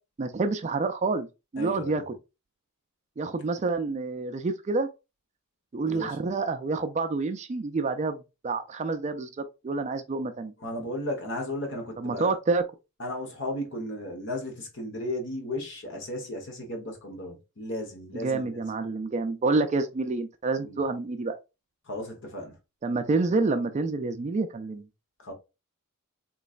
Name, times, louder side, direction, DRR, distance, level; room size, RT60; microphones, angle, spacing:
voice 1, 0.2-1.3 1.5-2.2 3.2-4.9 5.7-10.5 12.0-12.6 18.1-21.4 22.8-24.8, right 3 dB, 30° right, 0.3 m, -28 dB
voice 2, 1.6-2.1 5.9-6.2 10.6-12.4 13.0-18.6 20.6-20.8 21.9-22.5 25.2-25.3, left 1 dB, 55° left, 1.2 m, -35 dB
3.8 x 3.1 x 2.4 m
head